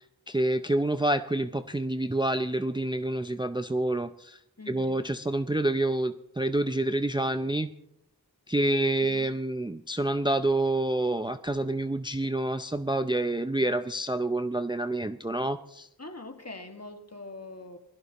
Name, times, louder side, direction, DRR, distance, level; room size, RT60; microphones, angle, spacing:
voice 1, 0.3-4.4 4.7-7.7 8.5-15.9, right 1 dB, 10° right, 10 dB, 0.5 m, -28 dB
voice 2, 4.6-5.0 16.0-17.8, left 2 dB, 40° left, 5 dB, 1.9 m, -43 dB
26.5 x 17.0 x 3.0 m, 0.80 s
wide cardioid pair, 45°, 38 cm